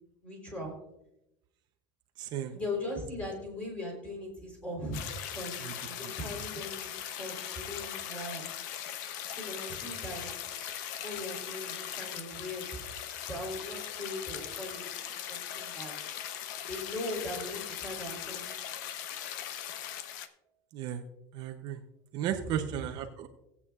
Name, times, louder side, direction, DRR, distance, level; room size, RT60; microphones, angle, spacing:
voice 1, 0.2-0.7 2.5-5.0 5.3-8.5 9.3-10.3 11.0-12.7 13.3-14.8 15.3-15.9 16.7-18.5, left 1 dB, 10° left, -1 dB, 3.7 m, -39 dB
voice 2, 2.2-2.6 5.6-5.7 6.0-6.1 20.7-21.0 21.3-21.8 22.1-23.3, right 10 dB, 45° right, 5 dB, 0.7 m, -35 dB
sound 1, 4.9-20.3, left 10 dB, 70° left, 0.8 m, -39 dB
18.0 x 8.3 x 2.4 m, 0.85 s
supercardioid pair, 150°, 10 cm